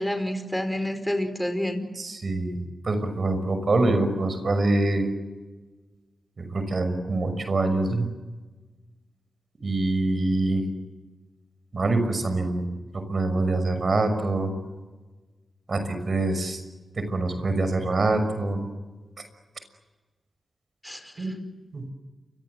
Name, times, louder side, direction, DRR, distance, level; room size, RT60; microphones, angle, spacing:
voice 1, 0.0-1.8 20.8-21.3, left 1 dB, 5° left, 7 dB, 5.0 m, -29 dB
voice 2, 2.0-2.6 2.8-5.1 6.4-8.1 9.6-10.6 11.7-12.6 12.9-14.5 15.7-16.6 17.0-18.6 21.2-21.3 21.7-21.8, right 2 dB, 55° right, 9 dB, 6.0 m, -25 dB
29.0 x 24.5 x 8.0 m, 1.3 s
cardioid pair, 60°, 0 cm